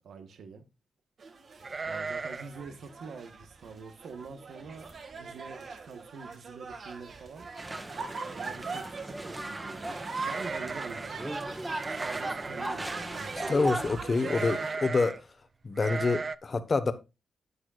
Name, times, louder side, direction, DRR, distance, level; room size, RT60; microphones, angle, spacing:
voice 1, 0.0-0.6 1.8-7.5 8.3-11.5 11.9-13.7, right 5 dB, 80° right, 1.3 m, -46 dB
sound 1, 1.2-14.8, right 4 dB, 60° right, 1.9 m, -41 dB
sound 2, 1.6-2.6 2.9-3.0 3.4-3.7 4.3-4.4 4.7-5.2 5.5-5.6 6.7-6.8 7.1-7.5 10.2-11.2 11.8-12.7 14.2-15.2 15.8-16.4, right 4 dB, 45° right, 0.5 m, -36 dB
sound 3, 7.6-14.0, right 1 dB, 20° right, 1.7 m, -37 dB
voice 2, 13.5-15.2 15.6-16.9, left 4 dB, 45° left, 1.3 m, -27 dB
11.0 x 8.8 x 2.5 m
cardioid pair, 70°, 0 cm